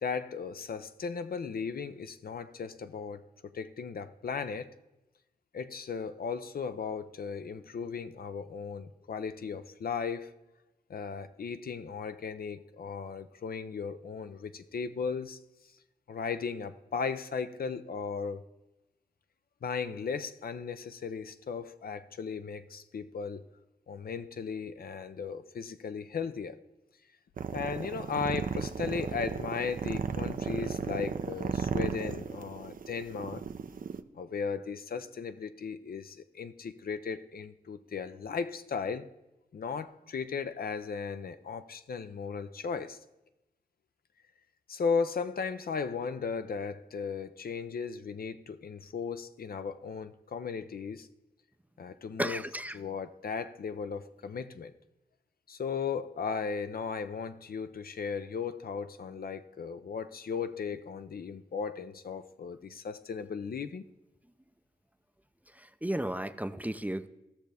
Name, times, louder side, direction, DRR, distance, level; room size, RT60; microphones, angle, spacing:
voice 1, 0.0-3.2 3.5-4.7 5.5-10.3 10.9-15.4 16.1-18.4 19.6-23.4 23.9-26.6 27.5-33.4 34.1-39.1 39.5-43.0 44.7-51.1 51.8-52.4 52.7-54.7 55.5-63.8, left 5 dB, 60° left, 10 dB, 0.6 m, -36 dB
sound 1, 27.4-34.0, right 6 dB, 55° right, 0.6 m, -35 dB
voice 2, 52.2-52.8 65.8-67.1, right 1 dB, 10° right, 11 dB, 0.5 m, -33 dB
15.5 x 6.4 x 3.4 m, 0.98 s
supercardioid pair, 40°, 17 cm